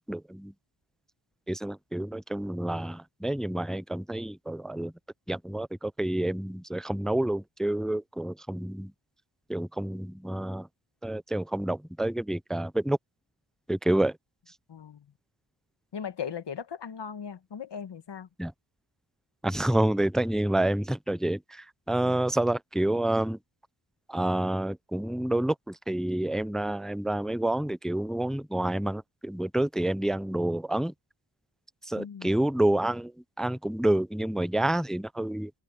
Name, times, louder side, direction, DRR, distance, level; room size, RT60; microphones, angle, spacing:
voice 1, 0.1-0.5 1.5-4.9 5.3-8.9 9.5-10.7 11.0-13.0 13.7-14.2 18.4-18.5 19.4-23.4 24.1-30.9 31.9-33.1 33.4-35.5, right 1 dB, ahead, 0.4 m, -28 dB
voice 2, 14.7-15.0 15.9-18.3 22.0-22.2 32.0-32.3, left 7 dB, 60° left, 1.3 m, -38 dB
wide cardioid pair, 90°, 46 cm